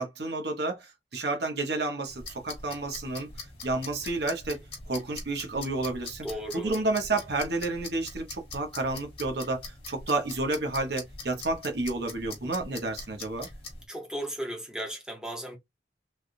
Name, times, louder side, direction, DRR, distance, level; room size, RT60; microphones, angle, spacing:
voice 1, 0.0-3.3 3.6-6.3 6.5-13.5, right 2 dB, 60° right, 1.0 m, -30 dB
sound 1, 2.1-13.8, left 3 dB, 30° left, 1.2 m, -43 dB
voice 2, 6.2-6.8 13.9-15.6, right 1 dB, 5° right, 0.9 m, -35 dB
3.4 x 2.3 x 2.6 m
head